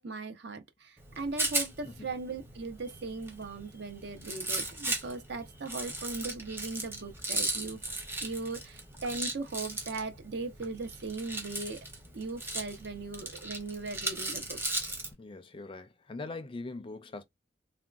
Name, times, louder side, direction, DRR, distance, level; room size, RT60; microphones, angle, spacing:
voice 1, 0.0-7.8 8.2-11.8 12.1-14.6, right 3 dB, 60° right, 0.6 m, -38 dB
Rattle, 1.0-15.1, right 2 dB, 15° right, 0.7 m, -37 dB
voice 2, 15.2-17.2, left 3 dB, 25° left, 0.4 m, -42 dB
3.6 x 2.2 x 2.3 m
head